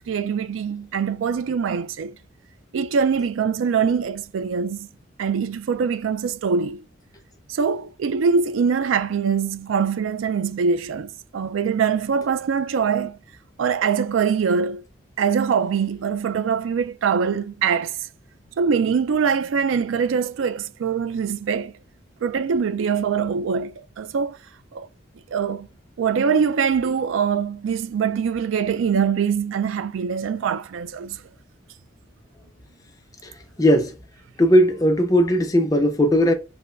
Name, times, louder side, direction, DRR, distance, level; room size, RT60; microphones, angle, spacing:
voice 1, 0.1-2.1 2.7-4.9 5.2-6.8 7.5-13.2 13.6-14.8 15.2-18.0 18.6-21.7 22.2-24.4 24.7-24.9 25.3-25.7 26.0-31.2, right 6 dB, 85° right, 0.4 m, -23 dB
voice 2, 33.6-33.9 34.4-36.3, equal, 20° left, 0.5 m, -17 dB
5.1 x 2.1 x 2.4 m
head